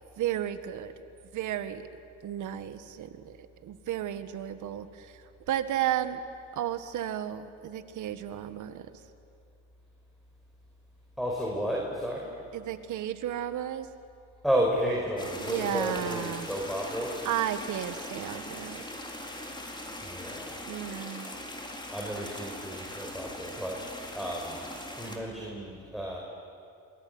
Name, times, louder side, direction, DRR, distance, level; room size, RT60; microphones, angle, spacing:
voice 1, 0.2-0.9 1.3-1.9 2.2-3.3 3.6-5.1 5.5-6.2 6.5-8.9 12.5-13.9 15.4-16.5 17.2-18.9 20.6-21.3, right 11 dB, 80° right, 10 dB, 1.7 m, -33 dB
voice 2, 11.2-12.3 14.4-17.2 20.0-20.5 21.5-21.6 21.9-24.6 25.0-26.2, equal, ahead, -2 dB, 5.3 m, -32 dB
sound 1, 15.2-25.2, left 1 dB, 15° left, 4.6 m, -40 dB
28.0 x 22.0 x 9.6 m, 2.4 s
cardioid pair, 90°, 30 cm